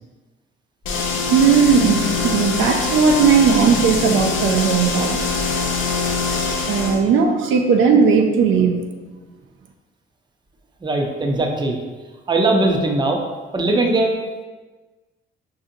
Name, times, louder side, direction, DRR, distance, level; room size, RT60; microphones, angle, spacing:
sound 1, 0.8-7.0, left 4 dB, 80° left, 0.5 m, -23 dB
voice 1, 1.3-5.2 6.7-8.8, right 6 dB, 80° right, 3 dB, 0.4 m, -16 dB
voice 2, 10.8-11.8 12.3-13.2 13.5-14.1, right 2 dB, 20° right, 2 dB, 0.5 m, -19 dB
4.7 x 2.6 x 2.6 m, 1.3 s
cardioid pair, 90°, 20 cm